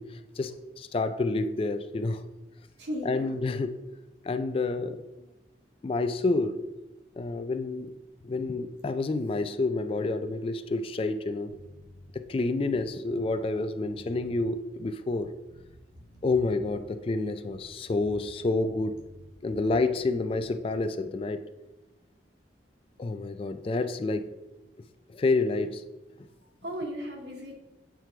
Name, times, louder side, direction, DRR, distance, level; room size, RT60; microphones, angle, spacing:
voice 1, 0.0-2.2 3.1-3.8 4.2-5.0 5.8-6.6 7.2-7.9 8.2-11.6 12.1-15.3 16.2-19.0 19.4-21.5 23.0-24.3 25.1-25.8, left 3 dB, 30° left, 0.3 m, -29 dB
voice 2, 2.8-3.4 26.6-27.6, equal, 75° right, 1.3 m, -36 dB
sound 1, 11.5-21.1, left 1 dB, 75° left, 0.7 m, -53 dB
7.4 x 3.4 x 4.5 m
head